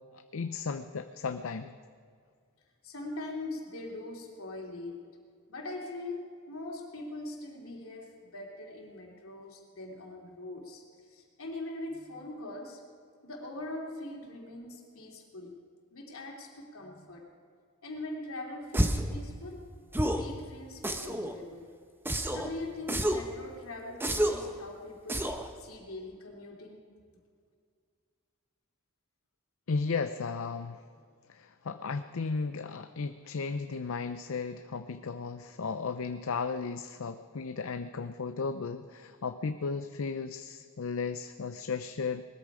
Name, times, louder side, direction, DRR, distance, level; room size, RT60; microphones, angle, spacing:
voice 1, 0.0-1.7 29.7-30.8 31.3-42.2, left 4 dB, 75° left, 9 dB, 0.6 m, -35 dB
voice 2, 2.8-5.0 5.5-12.8 13.2-15.6 15.9-17.3 17.8-21.7 22.3-26.8, left 2 dB, 90° left, 0 dB, 3.1 m, -42 dB
sound 1, 18.7-19.1 19.9-20.3 20.8-21.3 22.1-22.5 22.9-23.3 24.0-24.5 25.1-25.5, right 1 dB, 10° right, 0.9 m, -29 dB
20.0 x 13.5 x 4.9 m, 2.2 s
head